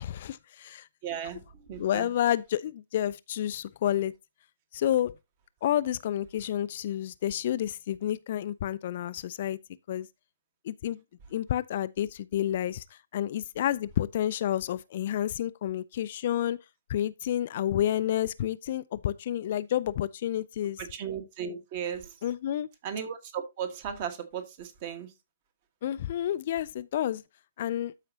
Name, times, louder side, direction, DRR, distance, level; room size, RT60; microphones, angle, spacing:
voice 1, 0.0-0.9 1.8-4.1 4.7-5.2 5.6-9.6 9.9-10.1 10.6-11.0 11.3-16.6 16.9-20.8 22.2-22.7 25.8-27.2 27.6-27.9, left 11 dB, 40° left, 0.3 m, -30 dB
voice 2, 1.0-2.1 20.8-22.1 22.8-25.1, right 8 dB, 30° right, 1.4 m, -36 dB
13.0 x 4.9 x 2.7 m
figure-of-eight pair, 130°, 0 cm